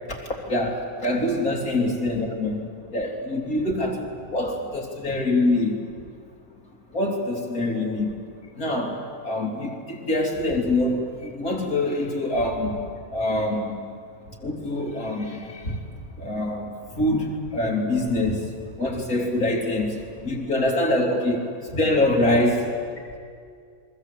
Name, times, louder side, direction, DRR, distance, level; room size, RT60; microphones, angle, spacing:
voice 1, 0.1-5.9 6.9-8.2 8.6-12.8 13.1-13.9 14.4-15.8 16.2-22.8, left 1 dB, 65° left, 0 dB, 3.5 m, -25 dB
27.5 x 23.0 x 8.3 m, 2.3 s
omnidirectional pair, 1.6 m